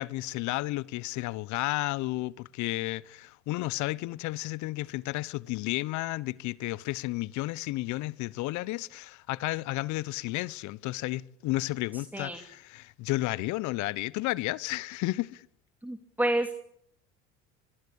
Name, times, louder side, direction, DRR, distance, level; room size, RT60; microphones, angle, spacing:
voice 1, 0.0-15.5, left 19 dB, 60° left, 1.0 m, -32 dB
voice 2, 15.8-16.5, right 1 dB, 5° right, 2.9 m, -29 dB
26.0 x 21.0 x 8.6 m
hypercardioid pair, 75°, 32 cm